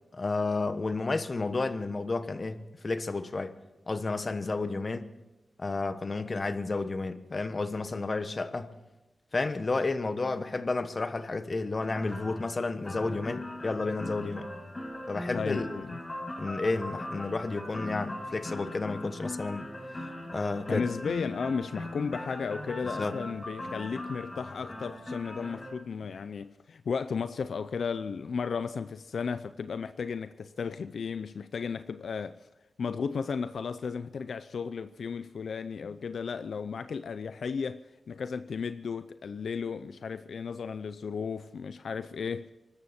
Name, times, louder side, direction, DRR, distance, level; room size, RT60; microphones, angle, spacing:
voice 1, 0.1-3.5 3.9-5.1 5.6-8.7 9.3-14.5 15.1-15.8 16.4-19.7 20.3-20.9 23.0-23.2, left 3 dB, 45° left, 1.3 m, -31 dB
sound 1, 11.8-25.7, left 1 dB, 30° left, 5.1 m, -40 dB
voice 2, 15.3-15.9 20.7-32.5 32.8-42.5, left 5 dB, 85° left, 0.5 m, -34 dB
24.0 x 13.0 x 4.4 m
cardioid pair, 65°, 0 cm